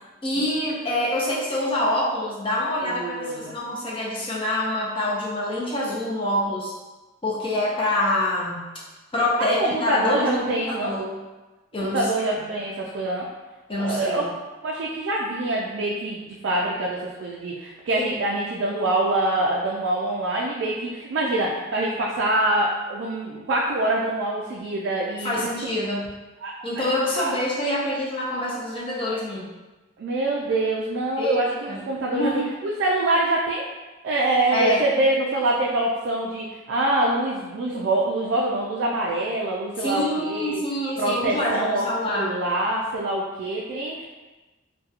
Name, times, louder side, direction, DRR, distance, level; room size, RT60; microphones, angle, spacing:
voice 1, 0.2-6.7 7.2-8.7 9.1-11.1 11.7-12.0 13.7-14.3 17.9-18.0 25.2-26.1 26.6-29.5 31.2-31.8 32.1-32.4 34.5-34.8 39.8-42.3, left 1 dB, 25° left, -5 dB, 0.5 m, -26 dB
voice 2, 2.8-3.5 9.4-11.0 11.9-13.3 13.8-14.3 14.6-25.5 26.4-26.5 27.2-27.3 30.0-33.7 34.0-40.6 41.0-44.0, right 2 dB, 65° right, -3 dB, 0.3 m, -25 dB
2.7 x 2.2 x 2.4 m, 1.2 s
head